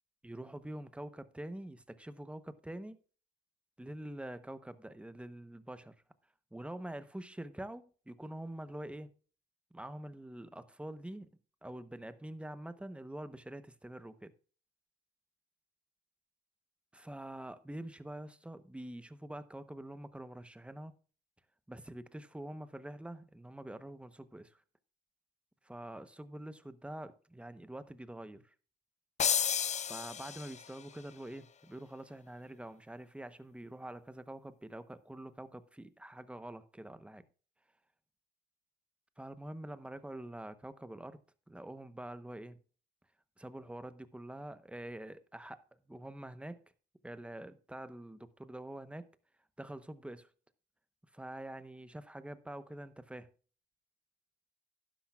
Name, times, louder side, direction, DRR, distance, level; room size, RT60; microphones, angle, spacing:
voice 1, 0.2-3.0 3.8-5.9 6.5-9.1 9.7-11.3 11.6-14.3 16.9-20.9 21.7-24.6 25.6-28.5 29.8-37.2 39.2-41.2 41.5-42.6 43.4-45.6 45.9-46.6 47.0-49.1 49.6-50.3 51.1-53.3, right 1 dB, 5° right, 0.9 m, -46 dB
sound 1, 29.2-30.8, left 8 dB, 35° left, 0.4 m, -32 dB
11.5 x 10.0 x 2.3 m
cardioid pair, 90°, 20 cm